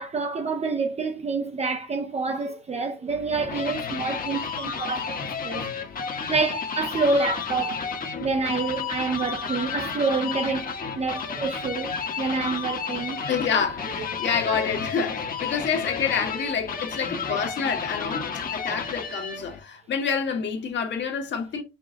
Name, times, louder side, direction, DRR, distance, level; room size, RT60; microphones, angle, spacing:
voice 1, 0.0-5.7 6.3-7.9 8.2-13.2, right 4 dB, 30° right, 0.6 m, -27 dB
sound 1, 3.1-19.6, left 6 dB, 45° left, 1.2 m, -32 dB
voice 2, 13.3-21.6, left 6 dB, 65° left, 1.7 m, -28 dB
5.9 x 2.3 x 3.8 m
cardioid pair, 90°, 20 cm